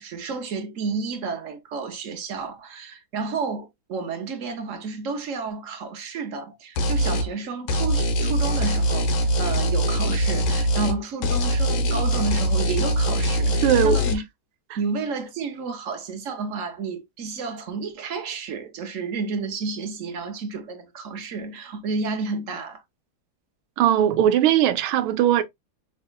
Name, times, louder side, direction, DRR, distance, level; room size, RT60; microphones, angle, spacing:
voice 1, 0.0-14.2 14.8-22.8, right 4 dB, 55° right, 0.9 m, -31 dB
sound 1, 6.8-7.3 7.7-11.0 11.2-14.1, equal, 90° left, 1.7 m, -22 dB
voice 2, 13.6-14.0 23.8-25.4, right 11 dB, 90° right, 1.5 m, -19 dB
5.4 x 3.6 x 2.2 m
omnidirectional pair, 2.2 m